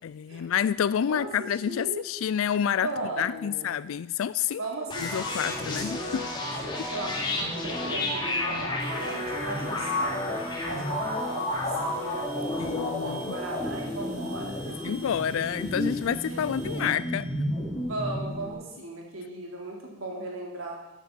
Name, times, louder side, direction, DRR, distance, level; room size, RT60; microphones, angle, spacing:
voice 1, 0.0-2.9 3.2-4.6 5.0-6.3 6.8-6.9 12.7-13.2 14.8-17.3, left 8 dB, 80° left, 0.3 m, -28 dB
voice 2, 1.0-2.0 2.7-3.7 4.6-5.4 6.9-10.3 10.7-11.0 11.3-15.0 15.9-16.0 16.3-17.1 17.8-20.8, right 2 dB, 80° right, 3.5 m, -37 dB
sound 1, 4.9-18.5, left 1 dB, 20° left, 3.1 m, -31 dB
sound 2, 8.8-18.0, right 2 dB, 60° right, 5.1 m, -49 dB
13.5 x 9.1 x 7.6 m
head